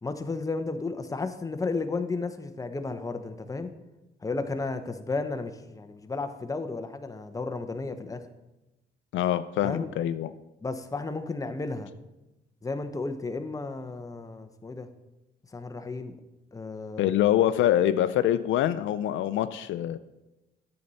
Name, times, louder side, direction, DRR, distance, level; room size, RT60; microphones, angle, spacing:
voice 1, 0.0-3.7 4.2-8.2 9.6-9.9 10.6-11.9 12.6-14.9 15.5-16.2 16.5-17.1, left 3 dB, 15° left, 8 dB, 0.8 m, -33 dB
voice 2, 9.1-10.3 17.0-20.0, left 12 dB, 80° left, 13 dB, 0.4 m, -25 dB
9.5 x 6.9 x 4.1 m, 0.98 s
cardioid pair, 90°, 20 cm